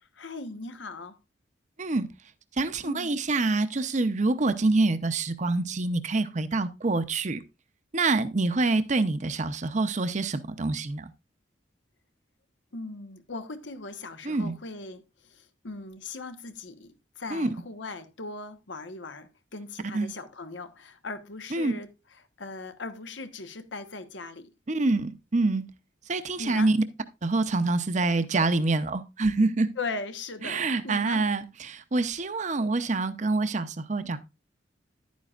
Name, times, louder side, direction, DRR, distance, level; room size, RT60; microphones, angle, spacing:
voice 1, 0.1-1.2 2.8-3.1 12.7-21.9 22.4-24.5 26.4-26.7 29.8-31.2, left 3 dB, 90° left, 1.2 m, -39 dB
voice 2, 2.6-7.4 7.9-11.1 14.2-14.5 17.3-17.5 19.9-20.1 21.5-21.7 24.7-25.6 26.1-26.8 27.2-29.7 30.4-34.2, right 3 dB, 40° right, 0.7 m, -26 dB
11.0 x 9.4 x 2.5 m
head